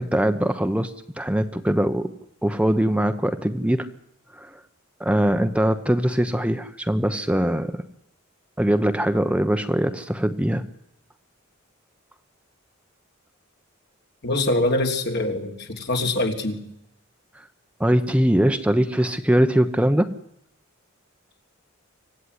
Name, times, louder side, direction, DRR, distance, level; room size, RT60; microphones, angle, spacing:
voice 1, 0.0-2.1 2.4-3.9 4.4-4.6 5.0-7.8 8.6-10.6 17.8-20.1, equal, 5° right, 8 dB, 1.1 m, -22 dB
voice 2, 14.2-16.6, left 2 dB, 55° left, 4 dB, 3.4 m, -24 dB
25.5 x 16.0 x 9.8 m, 0.77 s
head